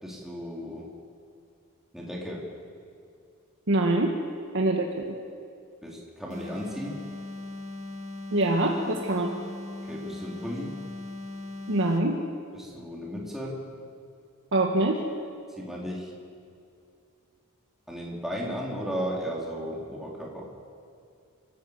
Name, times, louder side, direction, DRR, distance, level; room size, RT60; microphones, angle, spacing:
voice 1, 0.0-0.9 1.9-2.5 5.8-7.1 9.9-10.8 12.5-13.6 15.6-16.1 17.9-20.4, equal, ahead, -4 dB, 3.9 m, -35 dB
voice 2, 3.7-4.2 4.5-5.2 8.3-9.4 11.7-12.2 14.5-15.0, right 2 dB, 60° right, 1 dB, 1.7 m, -24 dB
sound 1, 6.3-12.2, left 2 dB, 30° right, 2.4 m, -39 dB
27.0 x 15.0 x 8.2 m, 2.4 s
head